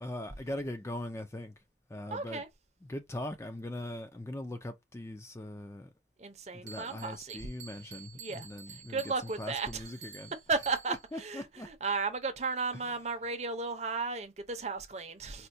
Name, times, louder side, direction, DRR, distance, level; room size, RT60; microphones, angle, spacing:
voice 1, 0.0-1.6 1.9-2.4 2.8-5.9 6.5-11.7 12.7-13.1, left 1 dB, 15° left, 0.4 m, -41 dB
voice 2, 2.1-2.5 6.2-7.4 8.1-9.8 10.5-15.5, right 4 dB, 40° right, 0.6 m, -35 dB
Bell, 6.7-11.2, right 6 dB, 85° right, 0.7 m, -50 dB
4.3 x 2.2 x 2.6 m
head